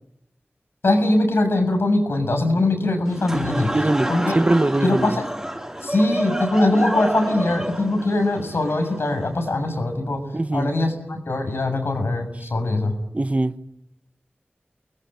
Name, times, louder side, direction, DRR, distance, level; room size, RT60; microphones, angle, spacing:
voice 1, 0.8-3.7 4.1-4.4 4.8-5.2 5.8-10.2 10.5-12.9, left 2 dB, 90° left, 7.0 m, -22 dB
Laughter / Crowd, 3.1-9.5, right 1 dB, 10° right, 6.8 m, -28 dB
voice 2, 3.6-5.2 10.3-10.7 13.1-13.5, right 2 dB, 35° right, 1.3 m, -21 dB
29.5 x 21.5 x 9.3 m
wide cardioid pair, 75°, 4 cm